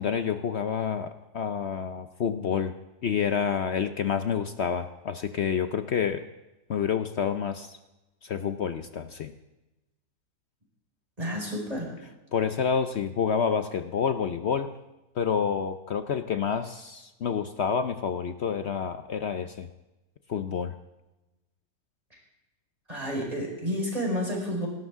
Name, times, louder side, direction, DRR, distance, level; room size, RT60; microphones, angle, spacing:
voice 1, 0.0-2.7 3.0-6.2 6.7-7.8 8.2-9.3 12.3-14.7 15.2-19.7 20.3-20.7, left 7 dB, 60° left, 9 dB, 0.7 m, -28 dB
voice 2, 11.2-11.9 22.9-24.7, equal, 20° right, -2 dB, 4.8 m, -30 dB
26.5 x 12.5 x 3.6 m, 1.0 s
omnidirectional pair, 1.7 m